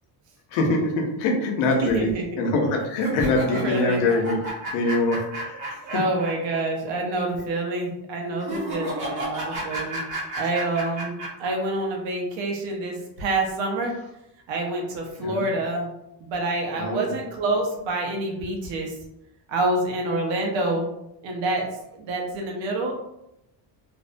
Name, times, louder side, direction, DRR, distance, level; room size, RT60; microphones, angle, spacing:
voice 1, 0.5-2.1 2.4-4.4 4.7-5.8 9.8-9.9 15.2-15.5 16.7-17.2, left 2 dB, 90° left, 2 dB, 0.7 m, -24 dB
voice 2, 1.8-2.2 3.1-4.0 5.5-10.0 10.3-13.9 14.5-15.9 16.2-19.0 19.5-20.9 21.2-21.7 21.9-22.9, right 2 dB, 75° right, 1 dB, 0.8 m, -27 dB
sound 1, 2.9-6.6 6.9-7.0 8.4-11.5, right 1 dB, 40° right, 0.9 m, -32 dB
2.6 x 2.1 x 2.5 m, 0.84 s
cardioid pair, 145°, 44 cm